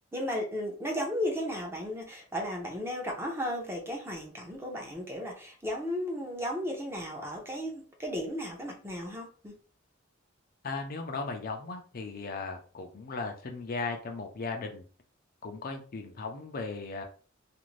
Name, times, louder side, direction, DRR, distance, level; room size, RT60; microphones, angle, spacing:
voice 1, 0.1-9.5, equal, 15° right, 0 dB, 0.7 m, -35 dB
voice 2, 10.6-14.8 15.4-17.0, left 3 dB, 50° left, 4 dB, 0.5 m, -37 dB
2.5 x 2.5 x 3.1 m, 0.39 s
head